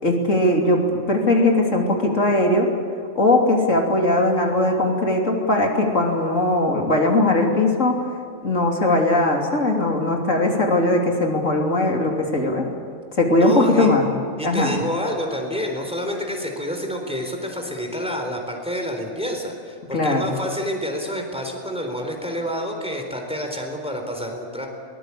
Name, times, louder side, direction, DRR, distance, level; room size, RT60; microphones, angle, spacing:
voice 1, 0.0-2.7 3.1-8.0 8.4-12.7 13.2-14.0 14.4-14.8 19.9-20.2, left 2 dB, 70° left, 1 dB, 3.5 m, -19 dB
voice 2, 13.4-13.9 14.4-24.7, equal, 5° right, 2 dB, 3.9 m, -28 dB
23.0 x 20.0 x 8.5 m, 2.3 s
omnidirectional pair, 1.3 m